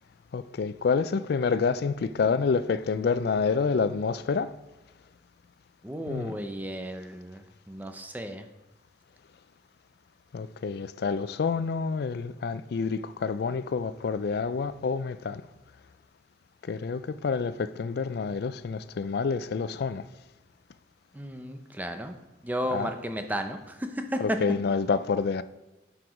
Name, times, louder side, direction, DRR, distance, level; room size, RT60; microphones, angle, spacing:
voice 1, 0.3-4.5 6.1-6.3 10.3-15.4 16.6-20.1 22.7-22.9 24.2-25.4, left 5 dB, 55° left, 0.3 m, -28 dB
voice 2, 5.8-8.5 21.1-22.2 22.4-24.4, equal, 10° right, 0.6 m, -33 dB
9.5 x 4.9 x 5.1 m
head